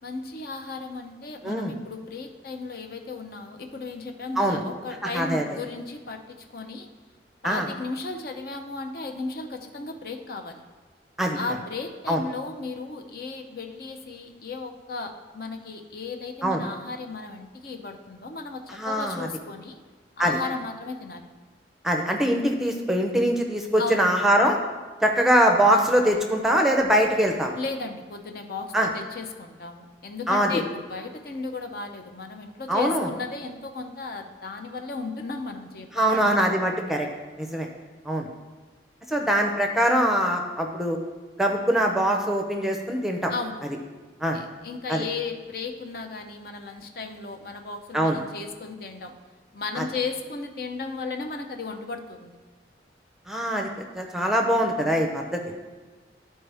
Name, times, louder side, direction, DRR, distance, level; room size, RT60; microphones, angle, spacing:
voice 1, 0.0-6.9 7.4-10.6 11.3-19.8 20.2-21.3 23.8-24.0 27.5-36.3 43.3-43.6 44.3-49.1 49.5-52.3, left 4 dB, 55° left, 4 dB, 0.6 m, -35 dB
voice 2, 1.4-1.8 4.4-4.6 5.0-5.4 7.4-7.7 11.2-11.4 12.1-12.2 16.4-16.6 18.7-19.3 20.2-20.4 21.8-24.6 25.0-27.5 28.7-28.9 30.3-30.5 32.7-33.1 36.0-37.1 37.4-37.7 38.0-38.3 39.1-41.0 41.4-43.3 44.2-44.4 44.9-45.1 47.9-48.2 49.8-49.9 53.3-53.7 54.0-55.4, equal, ahead, 2 dB, 0.6 m, -23 dB
12.5 x 4.4 x 3.4 m, 1.4 s
head